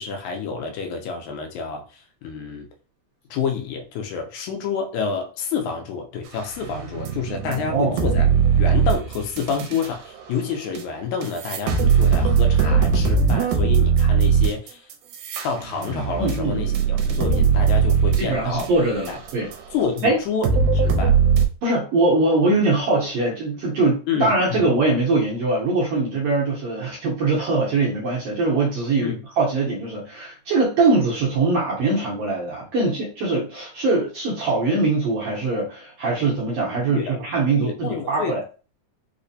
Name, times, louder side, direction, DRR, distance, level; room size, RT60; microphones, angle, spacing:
voice 1, 0.0-2.7 3.3-8.3 8.6-14.8 15.4-18.7 19.1-19.2 19.7-21.2 24.1-24.7 29.0-29.2 36.7-37.2 37.5-38.4, left 6 dB, 80° left, 4 dB, 1.9 m, -28 dB
sound 1, 6.6-9.9 10.7-10.8 11.2-19.6 20.0-20.1 20.4-21.5, right 6 dB, 85° right, 2.1 m, -19 dB
voice 2, 16.2-16.6 18.2-19.5 20.0-20.2 21.6-38.4, right 3 dB, 70° right, -5 dB, 1.6 m, -22 dB
4.8 x 2.0 x 2.6 m, 0.35 s
omnidirectional pair, 3.5 m